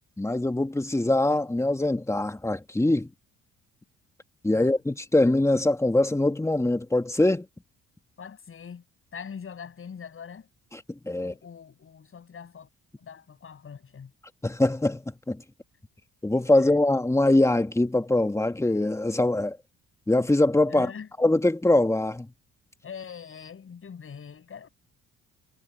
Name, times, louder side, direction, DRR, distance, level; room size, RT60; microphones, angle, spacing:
voice 1, 0.2-3.1 4.4-7.5 11.0-11.3 14.4-15.4 16.2-19.6 20.1-20.9 21.2-22.3, left 2 dB, 10° left, 1.8 m, -23 dB
voice 2, 8.2-8.8 9.1-10.5 11.2-12.7 13.0-14.1 20.7-21.1 22.8-24.7, left 7 dB, 45° left, 7.4 m, -42 dB
cardioid pair, 90°, 30 cm